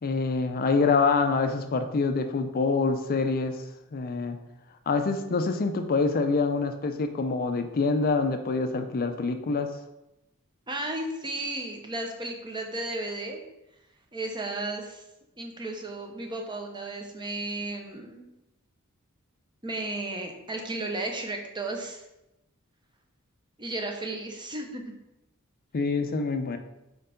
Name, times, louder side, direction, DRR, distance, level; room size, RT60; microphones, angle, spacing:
voice 1, 0.0-3.6 3.9-4.4 4.9-9.8 25.7-26.6, left 4 dB, 45° left, 8 dB, 0.5 m, -26 dB
voice 2, 10.7-13.4 14.1-15.0 15.4-18.2 19.6-22.0 23.6-24.8, right 2 dB, 20° right, 3 dB, 0.8 m, -34 dB
4.7 x 4.5 x 5.0 m, 0.91 s
head